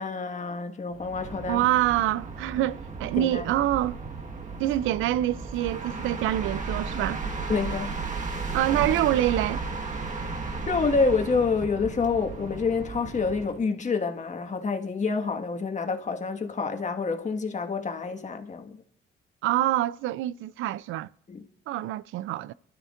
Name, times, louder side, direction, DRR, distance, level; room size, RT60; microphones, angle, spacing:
voice 1, 0.0-1.6 3.2-3.4 7.5-8.0 10.7-18.8 21.3-21.4, left 4 dB, 35° left, 1.6 m, -27 dB
sound 1, 0.9-13.6, right 4 dB, 40° right, 1.5 m, -34 dB
voice 2, 1.5-4.0 4.6-7.2 8.5-9.6 19.4-21.1 21.7-22.5, right 14 dB, 85° right, 0.4 m, -26 dB
25.0 x 12.5 x 2.5 m
cardioid pair, 90°, 20 cm